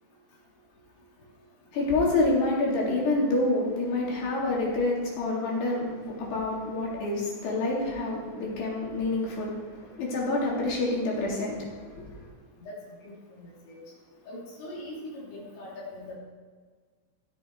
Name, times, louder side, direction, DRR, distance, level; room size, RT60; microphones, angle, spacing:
voice 1, 1.7-12.2, left 2 dB, 60° left, -4 dB, 5.2 m, -28 dB
voice 2, 12.7-13.8 14.3-16.2, left 1 dB, 90° left, -5 dB, 6.2 m, -42 dB
15.0 x 12.0 x 4.8 m, 1.5 s
omnidirectional pair, 5.7 m